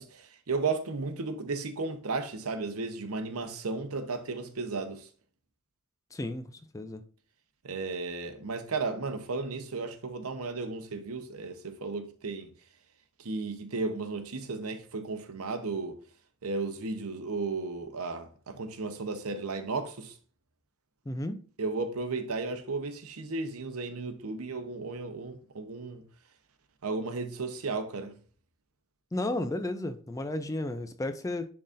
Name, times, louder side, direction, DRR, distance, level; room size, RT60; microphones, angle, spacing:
voice 1, 0.0-5.1 7.6-12.5 13.2-16.0 16.4-20.1 21.6-26.0 26.8-28.1, right 3 dB, 80° right, 0.9 m, -34 dB
voice 2, 6.1-6.5 6.7-7.0 21.1-21.4 29.1-31.5, left 1 dB, 15° left, 0.3 m, -33 dB
10.5 x 3.9 x 2.5 m
head